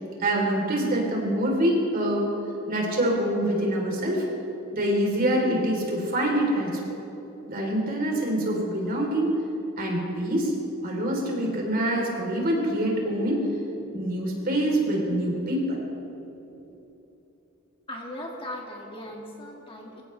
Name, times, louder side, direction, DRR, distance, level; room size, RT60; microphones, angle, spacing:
voice 1, 0.2-2.3 2.7-4.2 4.7-6.8 7.5-9.3 9.8-10.5 10.8-13.4 13.9-15.8, right 1 dB, 45° right, -1 dB, 3.6 m, -25 dB
voice 2, 17.9-20.0, left 1 dB, 25° left, -1 dB, 2.0 m, -38 dB
24.5 x 16.0 x 3.4 m, 3.0 s
head